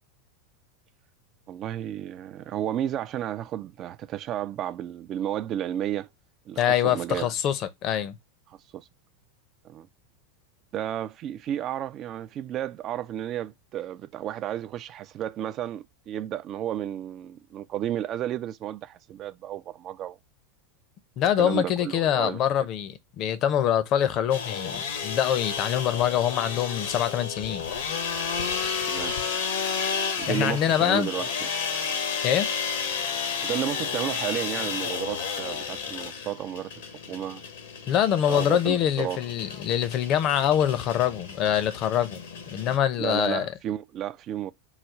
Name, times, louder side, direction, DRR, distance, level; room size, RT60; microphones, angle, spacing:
voice 1, 1.5-6.1 6.5-7.3 8.5-8.9 9.6-9.9 10.7-20.2 21.4-22.4 28.9-29.2 30.2-31.5 33.4-36.7 37.1-37.4 38.3-39.2 43.0-44.5, right 11 dB, 40° right, 0.4 m, -32 dB
voice 2, 6.6-8.1 21.2-27.7 30.3-31.1 32.2-32.5 37.9-42.2 42.5-43.5, left 10 dB, 45° left, 0.7 m, -24 dB
sound 1, 24.3-42.8, left 6 dB, 75° left, 1.1 m, -32 dB
4.0 x 2.3 x 4.5 m
hypercardioid pair, 100°, 0 cm